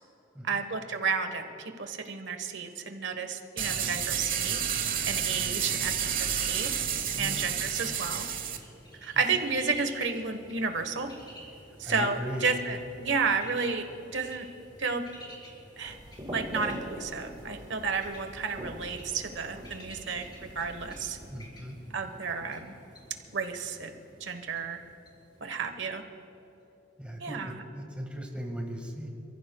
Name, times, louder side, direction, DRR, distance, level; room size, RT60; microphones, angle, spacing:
voice 1, 0.4-4.6 5.1-6.7 7.2-8.3 9.0-11.1 11.8-13.8 14.1-14.5 14.8-15.0 15.8-16.0 16.3-21.2 21.9-22.7 23.3-23.9 24.2-24.8 25.4-26.0 27.2-27.5, right 4 dB, 70° right, 7 dB, 1.2 m, -32 dB
sound 1, 3.6-8.6, right 8 dB, 50° right, 1.0 m, -30 dB
Bird, 8.3-26.1, equal, 25° left, 3.8 m, -51 dB
voice 2, 11.8-12.4 21.3-21.8 27.0-29.1, equal, 5° right, 1 dB, 1.7 m, -38 dB
sound 2, 15.8-21.3, right 1 dB, 25° right, 1.8 m, -43 dB
28.0 x 15.0 x 2.3 m, 3.0 s
head